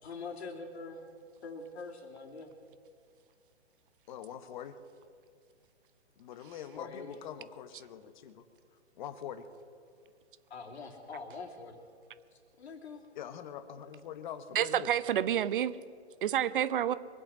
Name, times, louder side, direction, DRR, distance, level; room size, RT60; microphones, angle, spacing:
voice 1, 0.0-1.1 1.4-2.5 6.8-7.2 10.5-11.9 12.3-13.0, left 4 dB, 65° left, 1 dB, 2.8 m, -44 dB
voice 2, 4.1-4.8 6.2-8.5 8.9-9.5 13.1-14.9, left 9 dB, 40° left, 11 dB, 1.1 m, -44 dB
voice 3, 14.5-15.8 16.2-16.9, right 10 dB, 50° right, 16 dB, 0.7 m, -28 dB
23.5 x 8.3 x 6.1 m, 2.3 s
hypercardioid pair, 135°, 35 cm